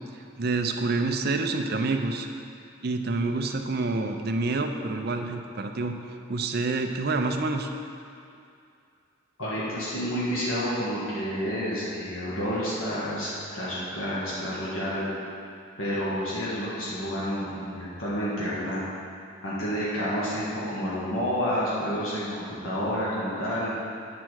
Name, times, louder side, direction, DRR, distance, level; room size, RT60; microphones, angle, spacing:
voice 1, 0.4-2.3 2.8-6.0 6.3-7.7, right 3 dB, 50° right, 5 dB, 0.6 m, -27 dB
voice 2, 9.4-15.1 15.8-18.8 19.4-23.7, equal, 85° left, -8 dB, 1.6 m, -29 dB
8.6 x 4.6 x 6.3 m, 2.4 s
head